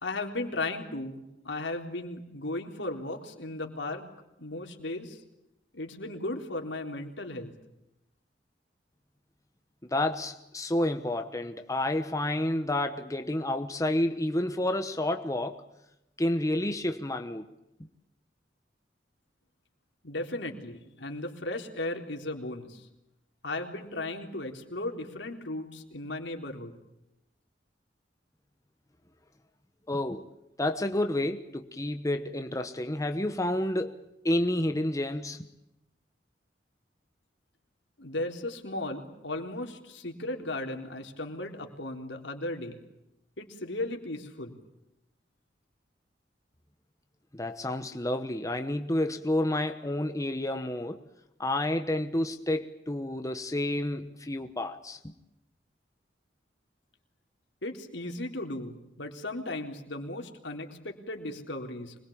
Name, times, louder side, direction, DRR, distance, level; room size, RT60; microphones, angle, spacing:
voice 1, 0.0-4.0 4.4-5.2 5.7-7.5 20.0-22.9 23.4-26.7 38.0-42.8 43.4-44.6 57.6-62.0, left 2 dB, 80° left, 3.8 m, -36 dB
voice 2, 9.8-15.6 16.2-17.4 29.9-30.3 30.6-34.0 34.2-35.5 47.3-51.0 51.4-55.1, left 1 dB, 20° left, 1.2 m, -30 dB
25.5 x 22.0 x 8.7 m
head